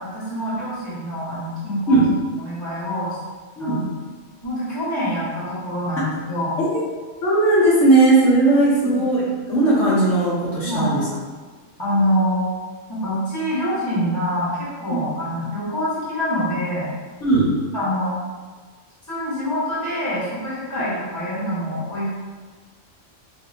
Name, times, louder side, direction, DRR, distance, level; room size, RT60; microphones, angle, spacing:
voice 1, 0.0-2.0 2.4-3.2 3.6-3.9 4.4-6.6 8.6-9.3 10.6-11.0 11.8-12.4 12.9-16.9 17.7-18.1 19.1-22.1, equal, 15° left, -9 dB, 1.2 m, -25 dB
voice 2, 7.2-9.2 9.5-11.0 14.9-15.0 17.2-17.5, right 2 dB, 75° left, -7 dB, 1.2 m, -17 dB
4.1 x 2.8 x 2.7 m, 1.4 s
omnidirectional pair, 1.3 m